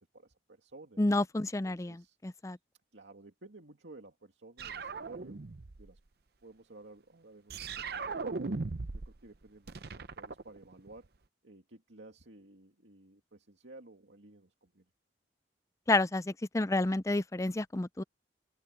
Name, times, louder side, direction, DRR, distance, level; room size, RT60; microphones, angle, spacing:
voice 1, 0.0-1.0 1.6-2.2 2.9-5.4 5.8-6.0 6.4-8.5 8.9-11.1 11.4-14.9, right 2 dB, 80° right, 2.4 m, -55 dB
voice 2, 1.0-2.0 2.2-2.6 15.9-18.0, left 2 dB, 15° left, 0.5 m, -30 dB
sound 1, 4.6-5.9 7.5-9.2 9.4-11.1, right 4 dB, 60° right, 0.7 m, -38 dB
open air
head